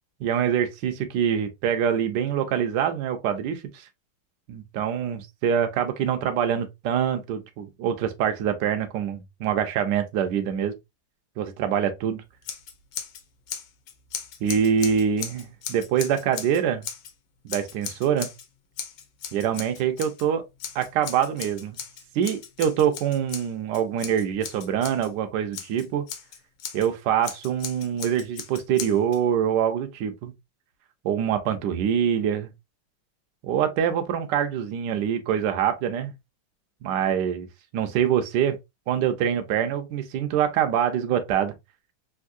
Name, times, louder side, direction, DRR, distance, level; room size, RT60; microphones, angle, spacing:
voice 1, 0.2-3.9 4.5-10.7 11.4-12.2 14.4-16.8 17.4-18.3 19.3-20.4 20.7-21.8 22.1-26.0 26.7-30.3 31.0-32.5 33.4-36.1 36.8-37.5 37.7-38.6 38.9-41.5, right 8 dB, 70° right, 1.2 m, -25 dB
Scissors, 12.4-13.2 13.5-17.1 17.5-18.5 18.8-20.3 20.6-25.1 25.5-26.9 27.2-29.2, left 8 dB, 75° left, 1.3 m, -37 dB
3.6 x 2.6 x 2.5 m
omnidirectional pair, 2.1 m